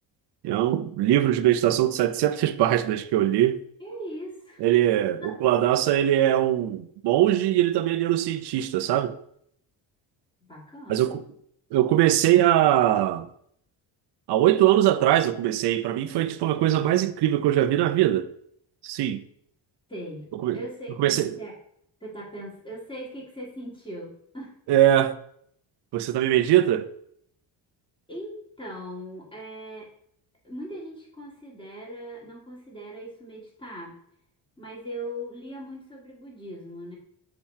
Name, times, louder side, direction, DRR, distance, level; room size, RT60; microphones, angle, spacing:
voice 1, 0.4-3.6 4.6-9.2 10.9-11.2 11.7-13.3 14.3-18.3 18.8-19.2 20.3-20.6 21.0-21.3 24.7-25.2 25.9-26.9, right 12 dB, 65° right, 0.5 m, -21 dB
voice 2, 3.8-4.7 5.2-5.4 10.4-11.2 19.9-21.5 22.0-24.6 28.1-29.9 30.4-34.0 34.6-36.9, equal, 10° left, 1.8 m, -39 dB
7.3 x 3.0 x 4.3 m
cardioid pair, 115°, 44 cm